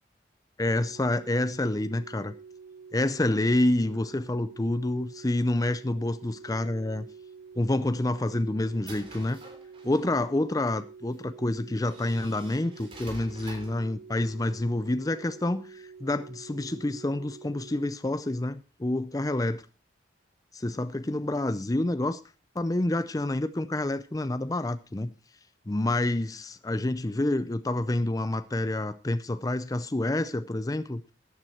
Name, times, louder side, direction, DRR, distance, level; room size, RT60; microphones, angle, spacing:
voice 1, 0.6-2.3 2.9-7.1 7.6-9.4 9.8-19.6 20.5-22.2 22.6-25.1 25.7-31.1, left 1 dB, 20° left, 0.5 m, -28 dB
sound 1, 0.7-17.9, right 5 dB, 65° right, 1.3 m, -48 dB
sound 2, 7.8-10.3 11.1-11.2 11.8-13.9, right 2 dB, 30° right, 3.3 m, -48 dB
14.5 x 9.2 x 4.4 m
head